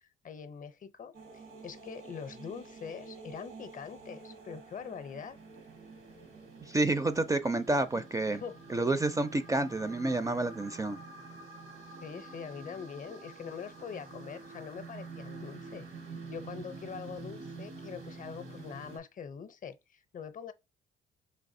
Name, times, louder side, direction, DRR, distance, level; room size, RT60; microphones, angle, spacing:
voice 1, 0.0-5.4 7.9-8.1 8.3-8.6 12.0-15.9 16.3-20.5, left 6 dB, 40° left, 0.6 m, -43 dB
sound 1, 1.1-19.0, right 3 dB, 90° right, 1.7 m, -48 dB
voice 2, 6.6-8.4 8.7-11.0, right 2 dB, 15° right, 0.4 m, -29 dB
4.6 x 3.3 x 2.6 m
cardioid pair, 90°, 20 cm